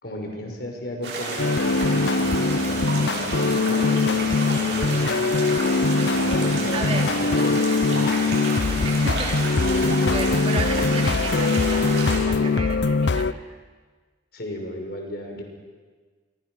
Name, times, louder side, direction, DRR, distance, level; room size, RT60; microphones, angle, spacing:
voice 1, 0.0-5.6 6.1-8.9 14.3-15.4, left 1 dB, 60° left, 2 dB, 5.4 m, -35 dB
sound 1, 1.0-12.2, right 2 dB, 80° right, 7.5 m, -30 dB
sound 2, 1.4-13.3, left 3 dB, 80° left, 0.7 m, -22 dB
voice 2, 6.7-7.1 8.8-9.6 10.1-13.4, right 3 dB, 35° right, 2 dB, 3.1 m, -33 dB
28.5 x 23.5 x 6.3 m, 1.4 s
head